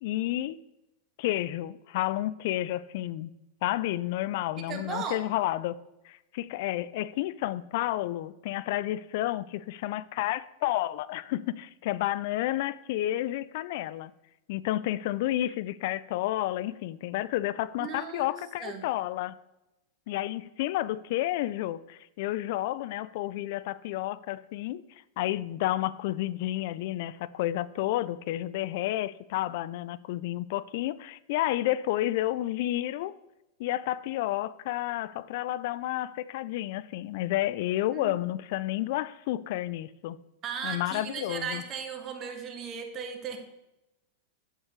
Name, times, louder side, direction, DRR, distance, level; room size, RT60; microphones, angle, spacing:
voice 1, 0.0-0.6 1.2-3.3 3.6-5.8 6.0-14.1 14.5-19.4 20.1-24.8 25.2-33.1 33.6-40.2 40.6-41.6, left 15 dB, 60° left, 0.3 m, -31 dB
voice 2, 4.7-5.2 17.8-18.3 18.6-18.8 37.9-38.2 40.4-43.4, right 6 dB, 35° right, 1.6 m, -36 dB
8.8 x 8.1 x 3.2 m
hypercardioid pair, 120°, 0 cm